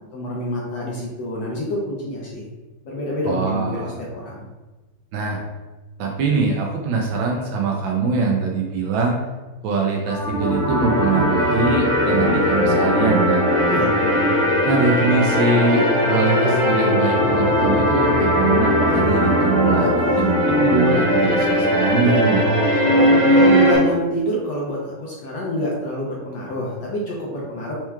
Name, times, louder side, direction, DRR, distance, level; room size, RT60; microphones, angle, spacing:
voice 1, 0.1-2.4 2.8-3.8 4.1-4.4 13.7-13.9 19.6-20.3 22.8-27.8, left 1 dB, 70° left, -4 dB, 1.1 m, -26 dB
voice 2, 3.2-4.0 5.1-5.4 6.0-9.2 9.6-13.5 14.6-22.4 23.4-23.7, right 4 dB, 75° right, 0 dB, 1.2 m, -22 dB
sound 1, 10.1-23.8, equal, 45° left, 1.3 m, -18 dB
4.4 x 2.9 x 2.3 m, 1.2 s
omnidirectional pair, 2.4 m